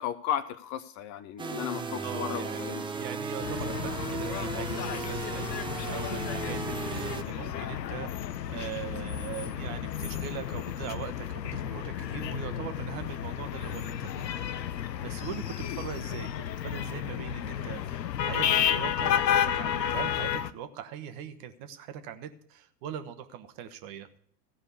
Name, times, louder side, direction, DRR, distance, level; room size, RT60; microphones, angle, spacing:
voice 1, 0.0-2.8 15.6-15.8, left 10 dB, 35° left, 12 dB, 0.7 m, -35 dB
sound 1, 1.4-7.2, right 4 dB, 10° right, 0.7 m, -35 dB
voice 2, 2.0-14.2 15.0-24.1, right 9 dB, 45° right, 9 dB, 1.3 m, -41 dB
sound 2, 3.4-20.5, left 9 dB, 85° left, 0.7 m, -32 dB
15.0 x 5.2 x 8.3 m, 0.62 s
hypercardioid pair, 100°, 49 cm